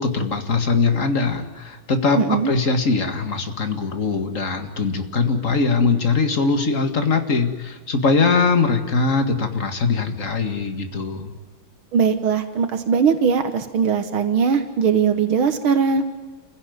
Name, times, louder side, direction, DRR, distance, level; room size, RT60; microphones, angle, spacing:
voice 1, 0.0-11.3, left 4 dB, 40° left, 7 dB, 2.2 m, -21 dB
voice 2, 2.2-2.5 11.9-16.0, right 6 dB, 85° right, 8 dB, 2.2 m, -20 dB
29.0 x 16.0 x 9.4 m, 1.3 s
omnidirectional pair, 2.2 m